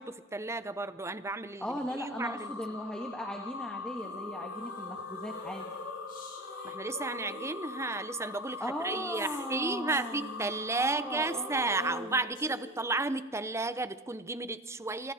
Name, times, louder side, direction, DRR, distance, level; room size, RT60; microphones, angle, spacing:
voice 1, 0.0-2.5 6.6-15.1, right 3 dB, 15° right, 13 dB, 0.8 m, -33 dB
voice 2, 1.6-5.7 8.6-12.1, equal, 5° left, 2 dB, 1.7 m, -38 dB
sound 1, 2.2-12.0, left 4 dB, 70° left, 1.5 m, -43 dB
sound 2, 4.0-13.0, left 2 dB, 45° left, 4.8 m, -46 dB
29.5 x 25.5 x 4.3 m, 1.2 s
head